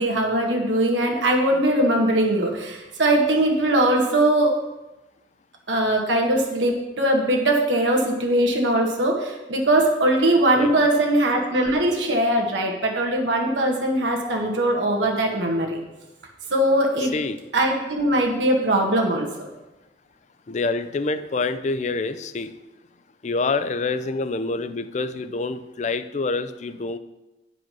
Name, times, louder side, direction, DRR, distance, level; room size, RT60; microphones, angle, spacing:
voice 1, 0.0-4.6 5.7-15.8 16.5-17.1 17.5-19.5, right 1 dB, 85° right, 1 dB, 1.4 m, -21 dB
voice 2, 10.6-10.9 17.1-17.4 20.5-22.5 23.2-27.0, left 3 dB, 40° left, 12 dB, 0.4 m, -26 dB
9.0 x 4.9 x 6.0 m, 1.0 s
head